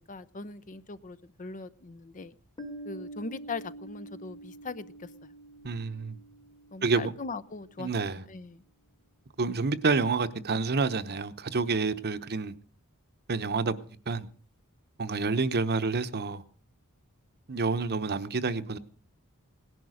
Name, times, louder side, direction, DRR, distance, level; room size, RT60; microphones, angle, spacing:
voice 1, 0.0-2.3 2.8-5.3 6.7-7.9 8.3-8.6, left 3 dB, 35° left, 0.6 m, -40 dB
Piano, 2.6-7.9, right 1 dB, 20° left, 1.4 m, -46 dB
voice 2, 5.6-6.2 6.8-7.1 7.8-8.2 9.4-12.6 13.3-13.8 14.1-14.3 15.0-16.4 17.5-18.8, right 4 dB, 45° right, 0.9 m, -28 dB
18.0 x 11.0 x 6.4 m
head